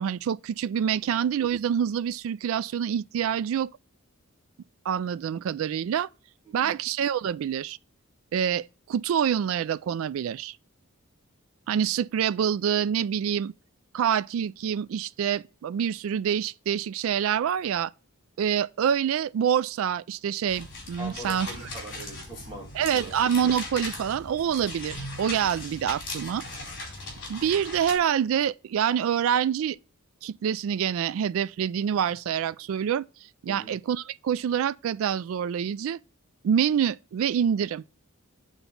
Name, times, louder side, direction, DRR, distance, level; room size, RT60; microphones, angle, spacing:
voice 1, 0.0-3.7 4.9-6.1 6.5-7.8 8.3-10.6 11.7-13.5 13.9-17.9 18.4-21.5 22.7-26.4 27.3-29.8 30.2-33.0 33.4-36.0 36.4-37.8, right 8 dB, 70° right, 0.3 m, -26 dB
voice 2, 6.5-6.8 21.0-23.2 33.5-33.7, right 1 dB, 25° right, 1.9 m, -42 dB
sound 1, 20.5-28.0, left 2 dB, 55° left, 4.1 m, -38 dB
8.8 x 4.1 x 5.7 m
head